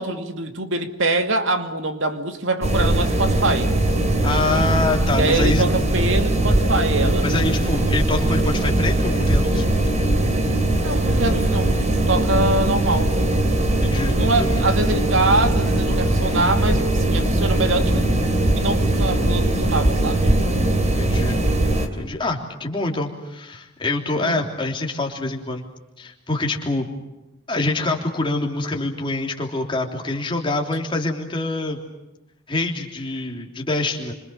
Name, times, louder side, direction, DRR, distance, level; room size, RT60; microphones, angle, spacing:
voice 1, 0.0-3.7 5.1-7.3 10.8-11.8 12.1-13.1 14.2-18.1 18.5-20.3 24.2-24.4, right 2 dB, 65° right, 7 dB, 2.4 m, -24 dB
sound 1, 2.6-21.9, right 1 dB, 35° right, 2.8 m, -20 dB
voice 2, 4.2-5.6 7.2-9.8 13.8-14.6 21.0-21.4 22.0-25.6 26.0-26.9 27.5-31.8 32.5-34.1, left 2 dB, 25° left, 1 dB, 3.3 m, -25 dB
28.0 x 26.0 x 7.0 m, 0.97 s
head